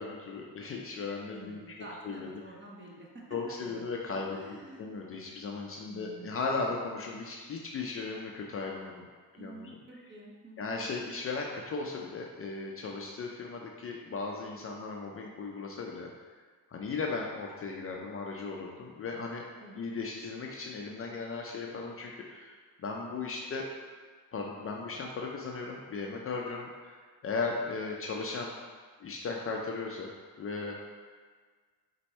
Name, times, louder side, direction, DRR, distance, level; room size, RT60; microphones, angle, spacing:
voice 1, 0.0-1.8 2.0-2.3 3.3-4.4 4.8-9.1 9.3-9.8 10.6-16.1 16.7-19.4 19.8-23.7 24.3-28.5 29.0-30.1 30.4-30.7, left 4 dB, 35° left, -1 dB, 0.4 m, -37 dB
voice 2, 1.3-3.2 3.6-3.8 4.3-4.8 5.9-6.3 9.4-10.8 19.6-19.8, right 2 dB, 30° right, -3 dB, 0.9 m, -48 dB
4.3 x 2.7 x 4.2 m, 1.5 s
cardioid pair, 130°, 38 cm